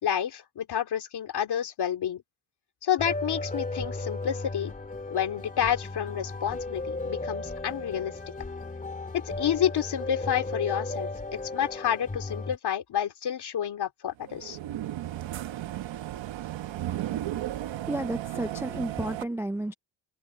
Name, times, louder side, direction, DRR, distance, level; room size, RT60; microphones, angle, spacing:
voice 1, 0.0-2.2 2.8-4.7 5.1-8.1 9.1-14.6, left 9 dB, 55° left, 2.6 m, -29 dB
sound 1, 3.0-12.6, left 2 dB, 15° left, 2.9 m, -35 dB
sound 2, 14.2-19.2, right 13 dB, 75° right, 1.1 m, -34 dB
voice 2, 17.7-19.7, right 1 dB, 5° right, 0.3 m, -32 dB
wide cardioid pair, 160°, 46 cm